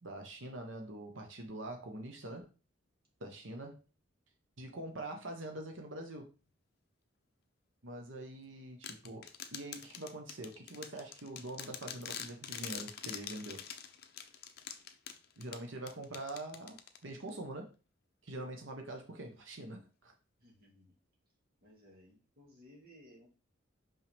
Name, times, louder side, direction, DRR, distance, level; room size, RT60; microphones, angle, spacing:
voice 1, 0.0-2.5 3.2-3.8 4.6-6.3 7.8-13.6 15.4-17.7 18.2-20.1, right 1 dB, 80° right, 3 dB, 1.2 m, -44 dB
sound 1, 8.8-17.3, left 8 dB, 50° left, 0.7 m, -46 dB
voice 2, 20.4-20.9 21.6-23.3, equal, 50° right, -1 dB, 2.5 m, -59 dB
5.6 x 5.6 x 3.6 m, 0.33 s
head